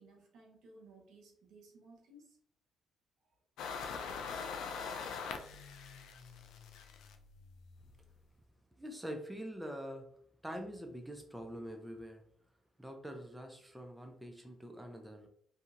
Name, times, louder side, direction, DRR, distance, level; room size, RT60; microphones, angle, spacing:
voice 1, 0.0-2.4, right 2 dB, 75° right, 0 dB, 0.9 m, -59 dB
sound 1, 3.6-8.1, left 5 dB, 85° left, 0.4 m, -43 dB
voice 2, 8.8-10.1 10.4-12.2 12.8-15.3, equal, 5° right, 3 dB, 0.5 m, -45 dB
2.7 x 2.7 x 2.4 m, 0.64 s
cardioid pair, 90°, 0 cm